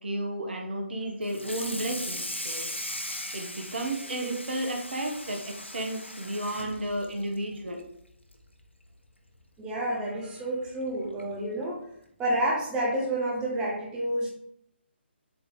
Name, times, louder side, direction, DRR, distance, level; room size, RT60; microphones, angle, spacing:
voice 1, 0.0-2.7 3.3-7.8, right 1 dB, 60° right, 2 dB, 1.4 m, -33 dB
Water tap faucet / Sink (filling or washing), 1.2-7.9 8.3-8.5 8.9-9.0 9.4-9.5 10.6-10.7 11.2-11.4, left 1 dB, 85° left, 1.1 m, -38 dB
voice 2, 9.6-11.8 12.2-14.3, right 1 dB, 10° right, -4 dB, 1.3 m, -29 dB
7.8 x 3.8 x 3.8 m, 0.71 s
figure-of-eight pair, 140°, 6 cm